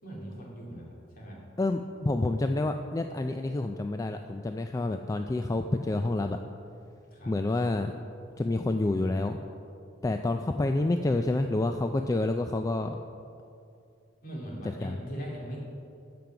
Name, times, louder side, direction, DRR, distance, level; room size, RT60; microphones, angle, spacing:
voice 1, 0.0-1.4 7.1-7.3 14.2-15.6, equal, 50° left, -3 dB, 2.8 m, -40 dB
voice 2, 1.6-6.4 7.3-7.9 8.4-9.4 10.0-13.0 14.8-15.0, left 2 dB, 20° left, 6 dB, 0.3 m, -28 dB
15.5 x 5.3 x 5.9 m, 2.5 s
head